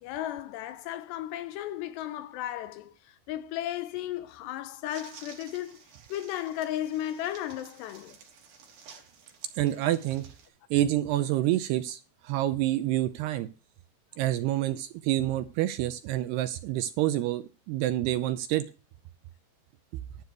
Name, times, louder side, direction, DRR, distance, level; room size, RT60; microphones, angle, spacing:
voice 1, 0.0-5.8 6.1-8.2, left 12 dB, 80° left, 2.7 m, -35 dB
sound 1, 4.9-10.5, right 6 dB, 55° right, 3.8 m, -53 dB
voice 2, 9.6-10.3 10.7-13.5 14.2-18.7, right 14 dB, 80° right, 2.4 m, -28 dB
11.5 x 4.8 x 8.0 m
omnidirectional pair, 5.2 m